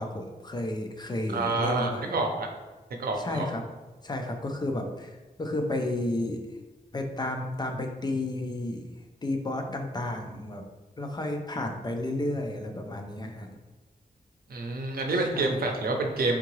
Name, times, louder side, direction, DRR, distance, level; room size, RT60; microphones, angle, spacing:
voice 1, 0.0-2.1 3.2-3.6 4.0-6.4 6.9-8.9 9.2-10.7 11.0-13.5 15.3-15.6, left 1 dB, 25° left, 3 dB, 0.4 m, -32 dB
voice 2, 1.3-2.5 3.0-3.5 14.5-16.4, right 2 dB, 75° right, 2 dB, 0.6 m, -28 dB
3.7 x 3.5 x 3.1 m, 1.2 s
wide cardioid pair, 160°, 15 cm